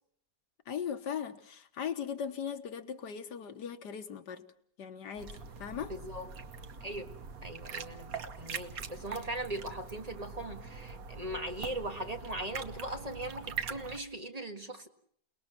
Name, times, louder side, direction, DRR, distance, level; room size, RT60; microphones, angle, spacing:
voice 1, 0.7-4.5 4.8-5.9, left 8 dB, 85° left, 9 dB, 1.9 m, -39 dB
sound 1, 5.2-14.0, right 5 dB, 60° right, 1.6 m, -43 dB
voice 2, 5.9-6.3 6.8-14.9, right 1 dB, 25° right, 5 dB, 1.8 m, -39 dB
28.5 x 20.0 x 6.0 m, 0.63 s
omnidirectional pair, 1.8 m